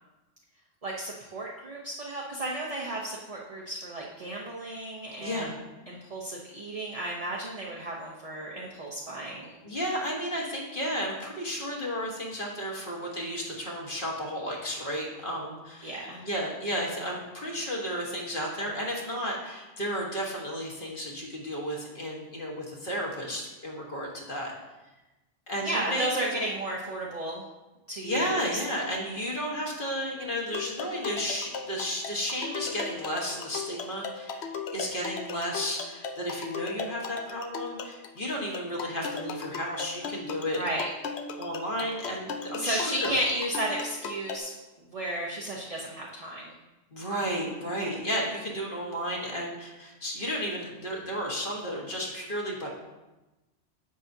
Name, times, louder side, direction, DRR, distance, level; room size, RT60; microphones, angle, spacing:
voice 1, 0.8-5.5 5.9-9.6 15.8-16.2 25.6-27.4 27.9-28.5 40.6-40.9 42.6-44.5 44.9-46.5, right 1 dB, 35° right, -3 dB, 0.9 m, -33 dB
voice 2, 5.2-5.5 9.6-24.5 25.5-26.2 28.0-40.6 41.4-43.1 46.9-52.7, equal, 45° left, -2 dB, 1.7 m, -33 dB
sound 1, 30.5-44.4, left 5 dB, 65° left, 0.9 m, -37 dB
10.5 x 7.5 x 2.7 m, 1.1 s
omnidirectional pair, 1.3 m